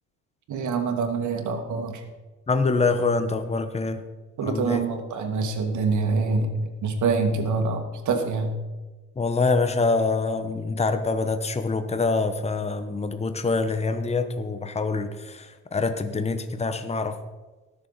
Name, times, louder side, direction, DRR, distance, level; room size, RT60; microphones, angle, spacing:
voice 1, 0.5-2.0 4.4-6.5 6.8-8.5, right 4 dB, 75° right, 5 dB, 2.0 m, -25 dB
voice 2, 2.5-4.0 4.4-4.8 9.2-17.2, left 3 dB, 20° left, 9 dB, 1.0 m, -25 dB
19.5 x 7.0 x 4.1 m, 1.2 s
cardioid pair, 90°, 30 cm